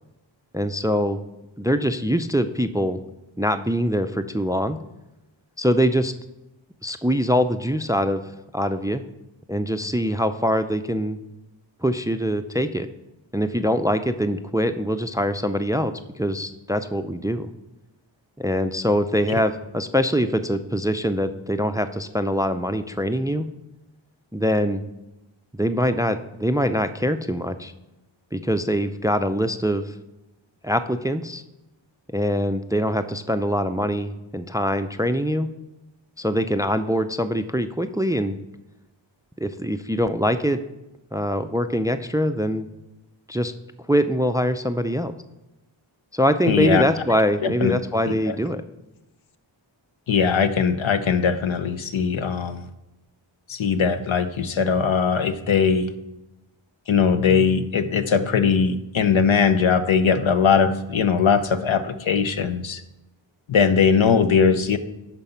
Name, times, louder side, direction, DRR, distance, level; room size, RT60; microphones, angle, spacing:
voice 1, 0.5-1.2 1.6-3.0 3.4-4.8 5.6-6.1 6.8-8.2 8.5-9.0 9.5-11.2 11.8-12.9 13.3-17.5 18.4-23.5 24.3-24.8 25.5-27.7 28.3-29.9 30.6-31.4 32.1-35.5 36.2-38.4 39.4-40.6 41.1-42.7 43.3-43.5 43.9-45.1 46.1-48.6, equal, 10° right, 10 dB, 0.4 m, -23 dB
voice 2, 46.5-46.8 47.6-47.7 48.3-48.4 50.1-52.6 53.5-55.9 56.9-62.8 63.5-64.8, left 6 dB, 75° left, 10 dB, 0.8 m, -20 dB
11.0 x 4.1 x 5.6 m, 0.96 s
cardioid pair, 50°, 48 cm